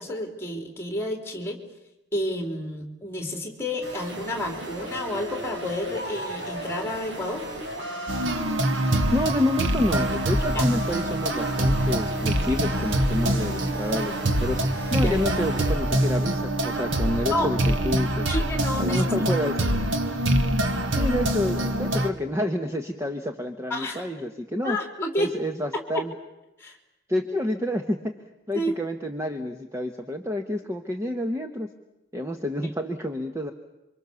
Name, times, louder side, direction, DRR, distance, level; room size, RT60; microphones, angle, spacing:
voice 1, 0.0-1.6 2.1-7.4 10.5-10.7 15.0-15.2 17.3-17.5 18.3-19.0 21.9-22.0 23.7-24.1 24.6-25.3 25.7-26.0 26.6-26.8 28.5-28.7, left 1 dB, 10° left, 3 dB, 3.4 m, -30 dB
sound 1, 3.8-15.7, right 1 dB, 70° right, 4.9 m, -36 dB
sound 2, 8.1-22.1, right 1 dB, 90° right, 1.8 m, -25 dB
voice 2, 9.1-18.3 18.8-19.6 20.9-24.8 25.2-26.1 27.1-28.1 28.5-31.7 32.1-33.5, left 1 dB, 15° right, 5 dB, 1.1 m, -28 dB
27.5 x 25.0 x 7.0 m, 0.94 s
head